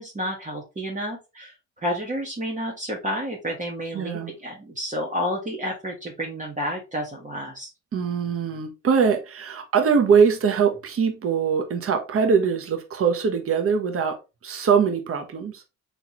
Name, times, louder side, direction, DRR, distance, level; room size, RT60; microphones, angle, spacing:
voice 1, 0.0-1.5 1.8-7.7, equal, 25° right, 1.3 m, -30 dB
voice 2, 3.9-4.3 7.9-15.6, right 6 dB, 50° right, 1.0 m, -22 dB
4.2 x 3.2 x 3.0 m
cardioid pair, 90°, 30 cm